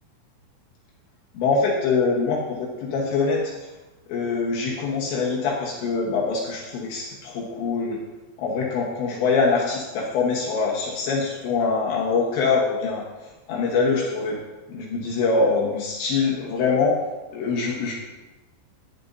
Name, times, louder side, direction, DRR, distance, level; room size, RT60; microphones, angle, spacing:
voice 1, 1.3-3.5 4.1-8.0 8.4-13.0 13.5-14.4 14.7-17.0 17.3-17.9, left 4 dB, 70° left, -2 dB, 3.1 m, -24 dB
14.0 x 10.5 x 2.7 m, 1.1 s
omnidirectional pair, 5.9 m